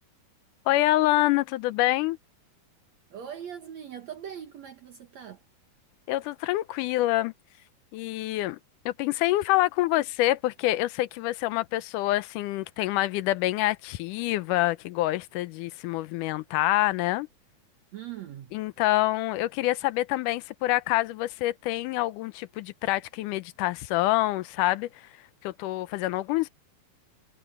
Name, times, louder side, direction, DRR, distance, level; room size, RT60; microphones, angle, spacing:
voice 1, 0.7-2.2 6.1-7.3 7.9-8.6 8.9-17.3 18.5-24.9 25.4-26.5, left 16 dB, 80° left, 1.9 m, -26 dB
voice 2, 3.1-5.4 17.9-18.5, right 9 dB, 60° right, 2.0 m, -40 dB
omnidirectional pair, 4.3 m